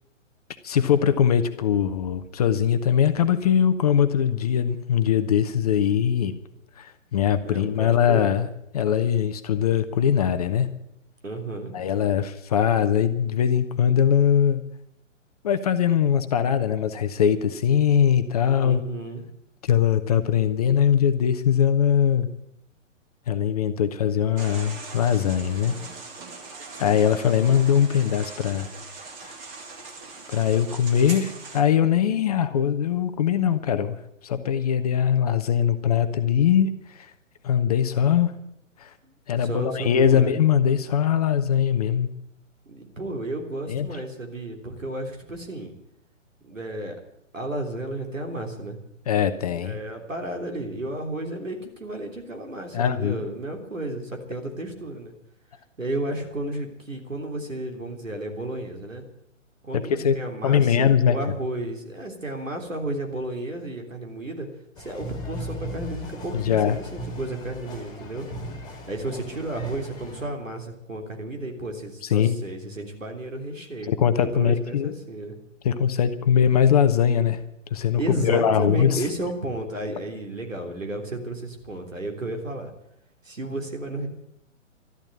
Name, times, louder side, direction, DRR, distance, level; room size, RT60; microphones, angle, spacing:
voice 1, 0.6-6.3 6.8-8.5 8.7-10.7 11.7-14.6 15.4-18.8 19.6-22.3 23.3-25.8 26.8-28.7 29.2-29.4 30.3-34.0 34.2-37.1 37.4-38.3 38.8-38.9 39.3-42.1 43.7-43.9 49.1-49.8 52.7-53.2 59.9-60.2 60.4-61.2 66.3-66.8 72.1-72.4 73.9-74.9 75.6-77.4 77.7-79.0, left 8 dB, 30° left, 10 dB, 0.8 m, -21 dB
voice 2, 7.4-8.4 11.2-11.8 18.6-19.2 39.0-40.4 42.7-45.7 46.4-47.0 47.3-48.8 49.4-55.1 55.8-59.0 59.6-64.5 64.8-68.3 68.9-73.9 74.2-75.3 78.0-82.7 83.2-84.1, right 2 dB, 75° right, 3 dB, 3.4 m, -33 dB
sound 1, 24.4-31.6, right 4 dB, 20° right, 2.1 m, -40 dB
sound 2, 64.8-70.2, equal, 10° left, 2.7 m, -37 dB
13.0 x 12.0 x 8.6 m, 0.80 s
figure-of-eight pair, 125°, 39 cm